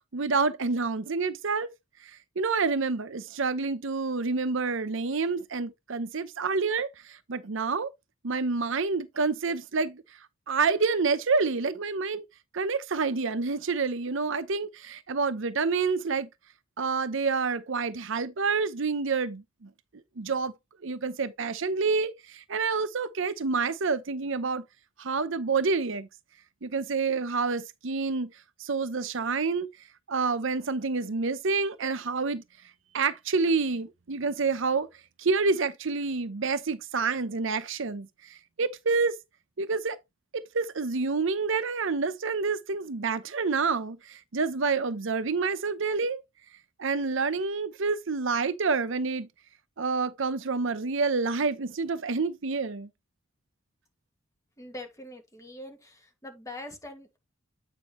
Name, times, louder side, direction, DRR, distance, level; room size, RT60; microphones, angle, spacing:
voice 1, 0.1-1.7 2.0-7.9 8.2-10.0 10.5-12.2 12.5-16.3 16.8-19.7 20.2-20.5 20.8-24.6 25.0-26.1 26.6-28.3 28.6-29.7 30.1-32.4 32.9-34.9 35.2-39.2 39.6-40.0 40.3-46.2 46.8-49.3 49.8-52.9, right 4 dB, 70° right, 0.8 m, -28 dB
voice 2, 54.6-57.2, left 1 dB, 15° left, 2.1 m, -43 dB
9.0 x 5.1 x 3.1 m
head